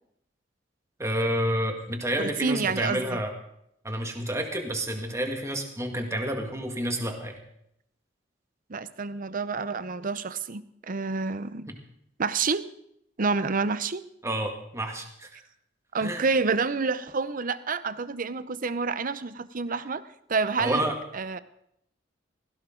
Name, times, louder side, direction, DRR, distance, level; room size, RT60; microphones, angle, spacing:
voice 1, 1.0-3.3 3.8-7.4 14.2-15.4 16.0-16.2 20.6-21.0, right 1 dB, 15° right, 3 dB, 1.9 m, -29 dB
voice 2, 2.2-3.2 8.7-11.7 12.2-12.6 13.2-14.0 15.9-20.0 20.3-20.8 21.1-21.4, right 4 dB, 45° right, 14 dB, 0.7 m, -28 dB
16.5 x 16.5 x 3.9 m, 0.74 s
head